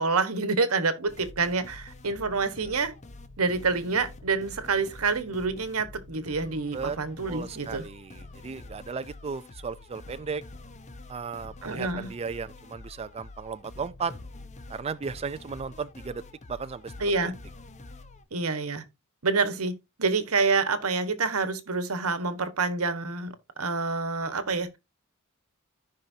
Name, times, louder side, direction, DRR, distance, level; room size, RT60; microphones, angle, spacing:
voice 1, 0.0-2.9 3.4-7.8 11.6-12.1 17.0-17.3 18.3-18.8 19.2-19.7 20.0-23.3 23.6-24.7, right 4 dB, 85° right, 1.3 m, -27 dB
sound 1, 1.1-18.2, left 2 dB, 35° left, 0.9 m, -46 dB
voice 2, 7.3-10.4 11.1-14.1 14.7-16.2 16.5-16.9 17.2-17.3, right 5 dB, 30° right, 0.4 m, -35 dB
13.5 x 5.6 x 2.7 m
head